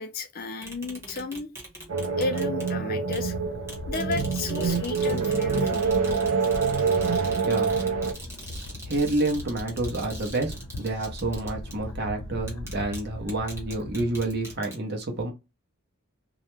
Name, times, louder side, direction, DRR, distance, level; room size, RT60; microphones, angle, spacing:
voice 1, 0.0-1.5 2.2-3.4 3.9-5.9, left 3 dB, 40° left, 0.4 m, -33 dB
sound 1, 0.6-2.7 3.1-3.3 3.6-11.8 12.4-13.0 13.3-14.7, right 1 dB, 10° right, 0.9 m, -43 dB
sound 2, 1.9-8.1, right 5 dB, 75° right, 0.4 m, -26 dB
sound 3, 3.0-14.6, left 2 dB, 85° left, 0.7 m, -39 dB
voice 2, 7.4-7.8 8.9-15.3, right 2 dB, 50° right, 0.7 m, -29 dB
2.3 x 2.1 x 3.0 m
head